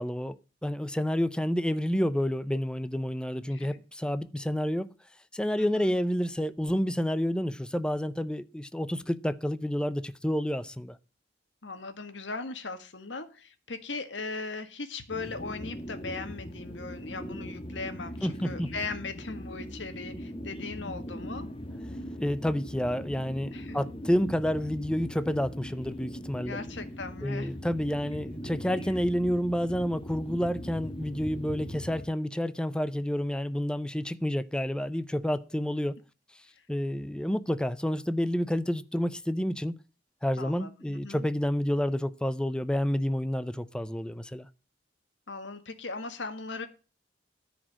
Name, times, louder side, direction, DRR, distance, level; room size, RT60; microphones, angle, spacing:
voice 1, 0.0-4.9 5.3-11.0 18.2-18.7 22.2-26.6 27.2-36.0 36.7-39.8 40.2-44.5, equal, 5° left, 0.5 m, -29 dB
voice 2, 3.5-3.8 5.6-5.9 11.6-21.5 23.5-23.8 26.4-27.5 40.4-41.3 45.3-46.7, left 3 dB, 90° left, 1.7 m, -39 dB
sound 1, 15.1-32.1, equal, 30° left, 2.0 m, -40 dB
14.0 x 5.0 x 7.4 m
head